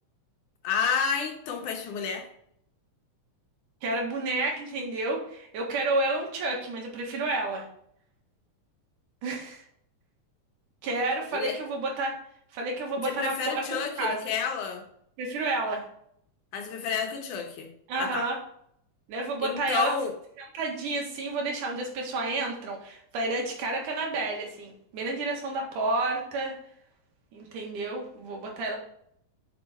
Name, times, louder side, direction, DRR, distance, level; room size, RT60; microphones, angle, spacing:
voice 1, 0.6-2.3 11.3-11.6 13.0-14.8 16.5-17.7 18.0-18.3 19.4-20.2, left 6 dB, 75° left, 3 dB, 2.6 m, -30 dB
voice 2, 3.8-7.6 9.2-9.6 10.8-12.2 12.5-13.6 14.0-14.3 15.2-15.8 17.9-18.4 19.1-19.9 20.5-26.5 27.3-28.8, right 2 dB, 85° right, 0 dB, 3.2 m, -30 dB
7.2 x 6.1 x 4.2 m, 0.71 s
omnidirectional pair, 3.5 m